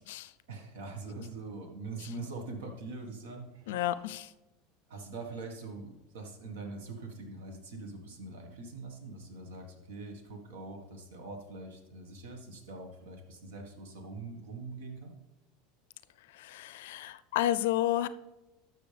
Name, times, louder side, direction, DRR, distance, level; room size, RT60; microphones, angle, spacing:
voice 1, 0.5-3.8 4.9-15.1, right 3 dB, 90° right, 4 dB, 1.6 m, -43 dB
voice 2, 3.7-4.3 16.3-18.1, left 13 dB, 80° left, 15 dB, 0.4 m, -31 dB
12.0 x 6.4 x 3.4 m, 1.0 s
supercardioid pair, 130°, 0 cm